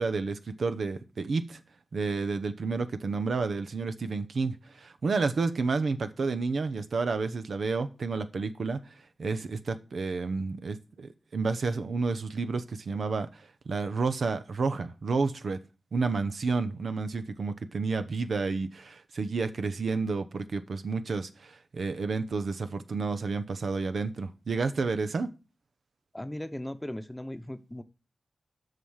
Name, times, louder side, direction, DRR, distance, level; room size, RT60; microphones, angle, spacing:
voice 1, 0.0-1.6 1.9-8.8 9.2-15.6 15.9-25.3, right 4 dB, 85° right, 0.8 m, -30 dB
voice 2, 26.1-27.8, left 1 dB, 10° left, 0.9 m, -37 dB
8.1 x 5.9 x 7.3 m
wide cardioid pair, 80°, 0 cm